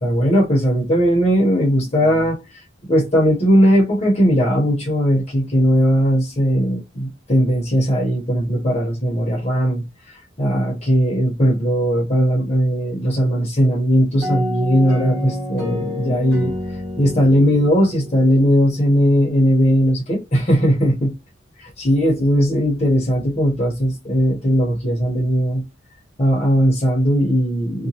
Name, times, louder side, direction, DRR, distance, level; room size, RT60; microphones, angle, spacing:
voice 1, 0.0-16.6 17.0-21.1 21.8-25.6 26.2-27.9, equal, 35° left, 0.8 m, -18 dB
sound 1, 14.2-18.9, left 1 dB, 30° right, 1.2 m, -28 dB
2.8 x 2.2 x 2.7 m
head